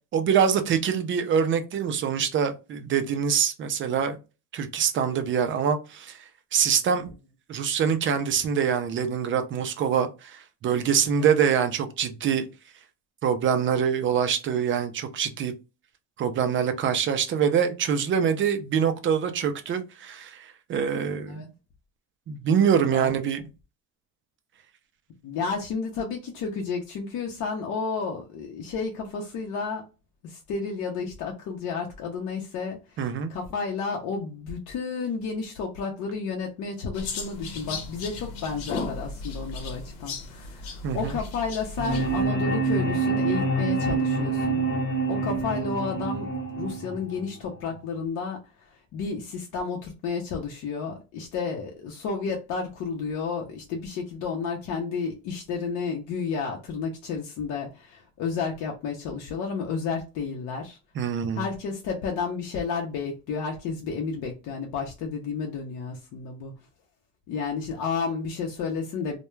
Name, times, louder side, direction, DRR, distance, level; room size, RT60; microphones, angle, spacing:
voice 1, 0.1-4.2 4.5-6.2 6.5-7.1 7.5-12.5 13.2-15.5 16.2-21.5 22.3-23.4 33.0-33.3 40.8-41.2 61.0-61.4, right 7 dB, 35° right, 0.4 m, -25 dB
voice 2, 25.2-29.8 30.2-44.7 45.1-46.3 46.6-60.8 61.3-66.5 67.3-69.2, left 5 dB, 60° left, 0.6 m, -31 dB
sound 1, 36.9-42.3, left 3 dB, 85° left, 0.8 m, -36 dB
sound 2, 41.8-47.8, right 3 dB, 30° left, 1.0 m, -26 dB
2.2 x 2.2 x 3.0 m
cardioid pair, 125°, 35 cm